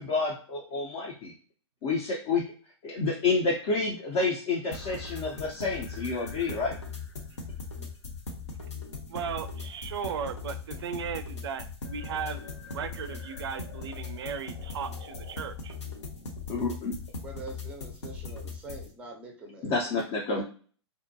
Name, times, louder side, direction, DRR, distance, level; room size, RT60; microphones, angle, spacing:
voice 1, 0.0-1.3 1.8-2.4 2.8-6.8 16.5-16.9 19.6-20.4, left 4 dB, 35° left, -2 dB, 0.5 m, -29 dB
sound 1, 4.7-18.9, left 4 dB, 75° left, 0.8 m, -39 dB
voice 2, 9.1-15.8, right 7 dB, 60° right, 11 dB, 0.4 m, -36 dB
voice 3, 17.2-19.7 20.3-20.4, right 2 dB, 10° right, 2 dB, 0.5 m, -44 dB
2.6 x 2.2 x 2.6 m, 0.42 s
figure-of-eight pair, 115°, 15 cm